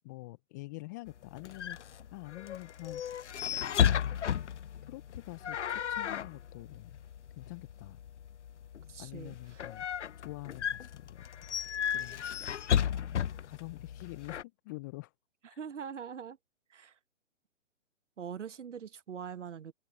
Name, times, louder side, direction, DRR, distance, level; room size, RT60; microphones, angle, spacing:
voice 1, 0.0-3.0 3.8-4.2 4.8-7.0 7.4-8.0 9.0-9.9 10.2-11.4 11.9-12.3 12.9-15.1 15.5-15.6, left 23 dB, 15° left, 0.6 m, -46 dB
sound 1, 1.1-14.4, left 9 dB, 65° left, 0.7 m, -34 dB
voice 2, 8.9-9.6 15.6-16.4 16.7-16.9 18.2-19.7, right 7 dB, 70° right, 1.1 m, -43 dB
figure-of-eight pair, 130°, 38 cm